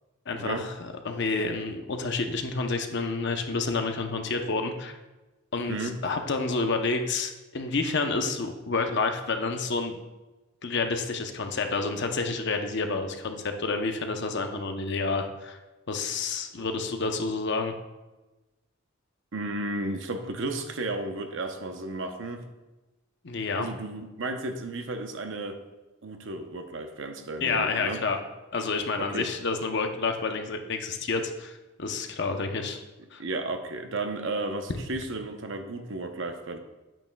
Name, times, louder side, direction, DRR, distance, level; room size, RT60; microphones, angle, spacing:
voice 1, 0.3-4.9 5.5-10.0 10.6-15.6 15.9-17.7 23.2-23.7 27.4-28.2 28.5-32.8 33.1-33.2, left 4 dB, 55° left, 5 dB, 0.7 m, -29 dB
voice 2, 19.3-22.4 23.5-25.6 26.0-28.0 29.0-29.3 33.2-36.6, right 2 dB, 60° right, 6 dB, 0.7 m, -33 dB
8.9 x 8.6 x 2.2 m, 1.1 s
head